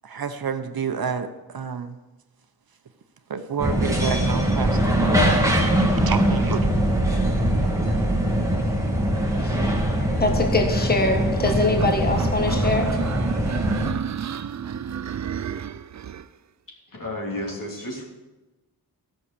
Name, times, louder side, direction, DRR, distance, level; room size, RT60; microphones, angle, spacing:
voice 1, 0.0-2.0 3.3-5.4 6.1-6.7, right 6 dB, 60° right, 8 dB, 0.9 m, -29 dB
sound 1, 3.6-13.9, right 1 dB, 10° right, 2.1 m, -22 dB
voice 2, 10.0-13.0, left 2 dB, 25° left, 3 dB, 1.4 m, -23 dB
sound 2, 11.5-16.3, right 8 dB, 45° right, 0.5 m, -31 dB
voice 3, 16.7-18.0, left 1 dB, 50° left, -1 dB, 3.2 m, -32 dB
14.0 x 6.5 x 6.9 m, 1.1 s
wide cardioid pair, 80°, 40 cm